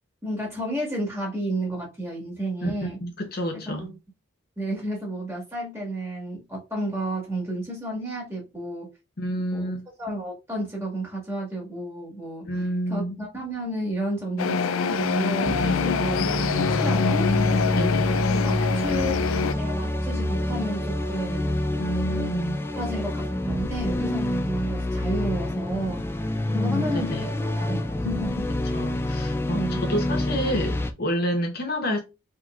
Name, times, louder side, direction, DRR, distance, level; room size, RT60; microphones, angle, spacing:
voice 1, 0.2-3.0 3.7-3.9 4.6-8.9 9.5-9.7 10.0-17.3 18.2-19.2 19.5-21.5 22.8-26.0 26.5-27.1 27.4-28.8 29.5-29.8, right 1 dB, 15° right, 1.8 m, -32 dB
voice 2, 2.6-3.9 9.2-9.8 12.4-13.2 16.0-16.1 16.9-18.2 21.8-22.6 26.4-27.3 28.7-32.0, equal, 50° left, 0.9 m, -29 dB
sound 1, 14.4-19.5, left 6 dB, 85° left, 0.4 m, -25 dB
sound 2, 15.4-30.9, left 1 dB, 10° left, 0.3 m, -27 dB
4.3 x 3.7 x 2.4 m
head